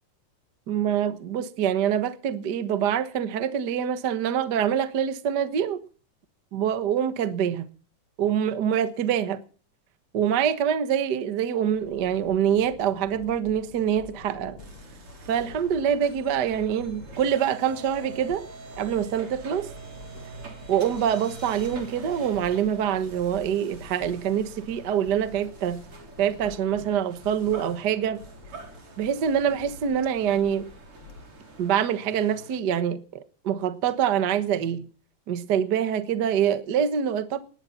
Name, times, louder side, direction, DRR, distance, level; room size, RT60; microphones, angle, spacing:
voice 1, 0.7-5.8 6.5-7.7 8.2-9.4 10.1-14.6 15.3-18.4 18.8-19.7 20.7-25.8 26.2-28.2 29.0-30.7 31.6-34.9 35.3-37.4, right 9 dB, 70° right, 0.9 m, -25 dB
sound 1, 11.7-31.7, left 2 dB, 50° left, 4.1 m, -48 dB
sound 2, 14.6-32.6, right 4 dB, 40° right, 4.3 m, -45 dB
19.5 x 12.0 x 5.8 m
omnidirectional pair, 4.0 m